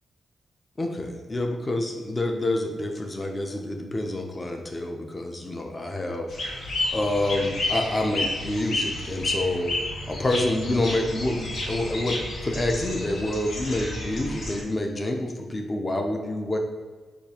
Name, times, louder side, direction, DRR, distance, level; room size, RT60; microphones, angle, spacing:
voice 1, 0.8-9.7 10.1-16.6, left 1 dB, 25° left, 3 dB, 0.5 m, -28 dB
sound 1, 6.3-14.6, left 2 dB, 85° left, 0.9 m, -31 dB
6.6 x 2.4 x 2.8 m, 1.4 s
cardioid pair, 105°, 0 cm